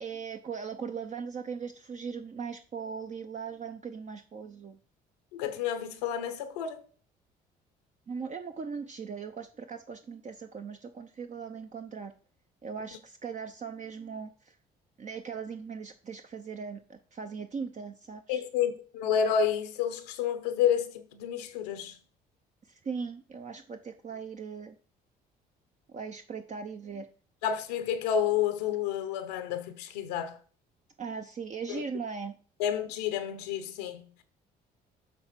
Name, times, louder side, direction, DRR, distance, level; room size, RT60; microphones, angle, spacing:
voice 1, 0.0-4.8 8.1-12.1 12.6-14.6 15.0-18.4 22.7-24.7 25.9-27.1 31.0-32.3, right 6 dB, 40° right, 0.7 m, -39 dB
voice 2, 5.3-6.8 18.3-22.0 27.4-30.4 31.7-31.8 32.6-34.2, left 8 dB, 90° left, 0.8 m, -30 dB
7.5 x 3.3 x 5.8 m
hypercardioid pair, 60°, 20 cm